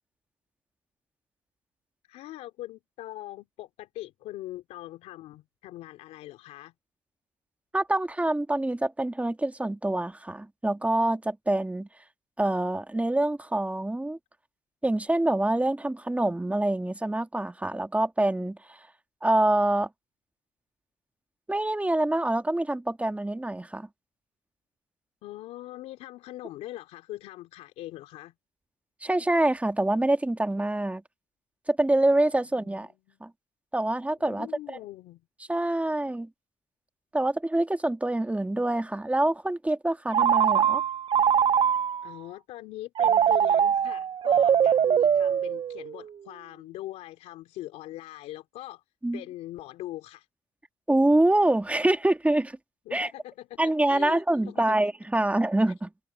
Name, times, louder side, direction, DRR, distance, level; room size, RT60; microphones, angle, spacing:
voice 1, 2.1-6.7 25.2-28.3 32.6-33.2 34.2-35.2 42.0-48.8 49.1-50.3 52.9-54.8, left 15 dB, 85° left, 3.5 m, -42 dB
voice 2, 7.7-11.9 12.4-14.2 14.8-18.8 19.2-19.9 21.5-23.9 29.0-31.0 31.7-32.9 33.2-33.3 33.7-34.8 35.5-36.3 37.1-40.8 49.0-49.2 50.9-52.6 52.9-53.1 53.6-55.9, right 1 dB, 10° right, 2.0 m, -25 dB
Telephone, 40.1-42.1 43.0-46.0, right 8 dB, 50° right, 0.5 m, -22 dB
supercardioid pair, 55°, 11 cm